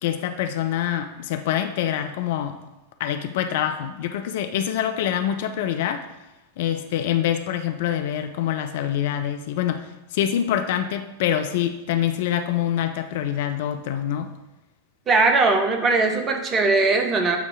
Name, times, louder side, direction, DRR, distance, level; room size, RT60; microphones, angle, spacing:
voice 1, 0.0-2.6 3.0-6.1 6.6-14.3, left 10 dB, 50° left, 8 dB, 0.4 m, -25 dB
voice 2, 15.1-17.4, right 3 dB, 25° right, 4 dB, 0.8 m, -20 dB
8.0 x 2.8 x 4.6 m, 0.97 s
figure-of-eight pair, 90°, 0 cm